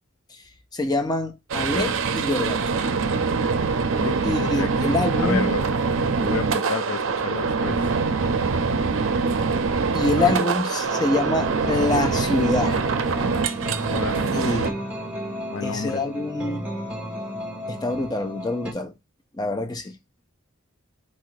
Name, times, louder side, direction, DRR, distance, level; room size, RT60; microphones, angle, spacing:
voice 1, 0.7-2.6 4.2-5.5 9.9-12.8 14.3-14.8 15.6-16.7 17.7-18.9 19.4-19.9, left 2 dB, 20° left, 0.6 m, -25 dB
sound 1, 1.5-14.7, right 4 dB, 70° right, 0.5 m, -24 dB
voice 2, 4.0-7.9 10.2-10.4 13.8-14.2 15.5-16.0, left 6 dB, 70° left, 0.4 m, -31 dB
sound 2, 10.8-18.7, equal, 5° right, 0.9 m, -33 dB
4.2 x 2.5 x 4.7 m
head